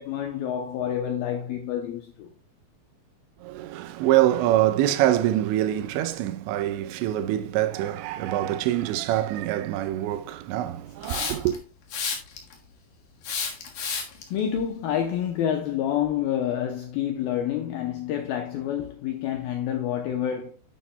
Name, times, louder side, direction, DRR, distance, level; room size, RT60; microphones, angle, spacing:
voice 1, 0.0-2.3 14.3-20.5, left 10 dB, 90° left, 2.1 m, -28 dB
voice 2, 3.4-11.6, right 13 dB, 85° right, 2.9 m, -25 dB
Hiss, 11.0-11.6 11.9-12.5 13.2-14.2, left 5 dB, 60° left, 2.5 m, -30 dB
9.9 x 9.5 x 2.3 m
omnidirectional pair, 5.2 m